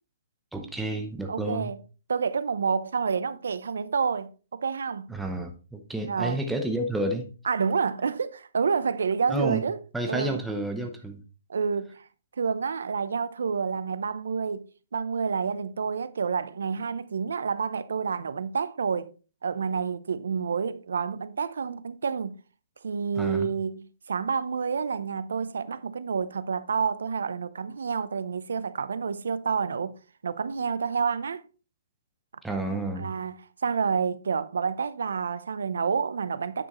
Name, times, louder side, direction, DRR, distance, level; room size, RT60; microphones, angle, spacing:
voice 1, 0.5-1.7 5.1-7.3 9.3-9.6 9.9-11.2 23.2-23.5 32.4-33.1, right 1 dB, 5° right, 0.7 m, -30 dB
voice 2, 1.3-1.8 2.1-5.1 6.1-6.4 7.4-9.8 10.1-10.4 11.5-12.1 12.4-19.1 19.4-22.4 22.8-30.0 30.2-31.4 33.0-33.4 33.6-36.7, right 5 dB, 80° right, 0.6 m, -29 dB
9.0 x 6.1 x 3.0 m
hypercardioid pair, 165°, 0 cm